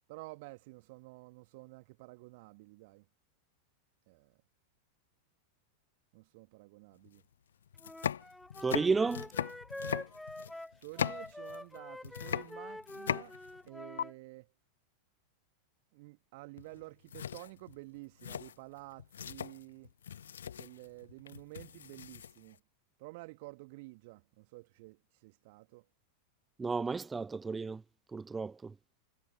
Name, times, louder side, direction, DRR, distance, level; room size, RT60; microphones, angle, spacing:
voice 1, 0.1-3.0 4.1-4.4 6.1-7.2 10.8-13.4 13.7-14.5 15.9-19.9 20.5-22.6 23.0-25.9, right 24 dB, 50° right, 1.5 m, -51 dB
sound 1, 7.1-7.2 7.7-11.8 12.0-13.7 14.0-14.1 16.6-16.8 17.1-22.6, left 9 dB, 65° left, 0.5 m, -39 dB
Wind instrument woodwind instrument, 7.8-14.1, left 1 dB, 5° left, 0.9 m, -46 dB
voice 2, 8.6-9.3 26.6-27.8 28.1-28.8, right 4 dB, 15° right, 0.5 m, -32 dB
figure-of-eight pair, 90°, 0 cm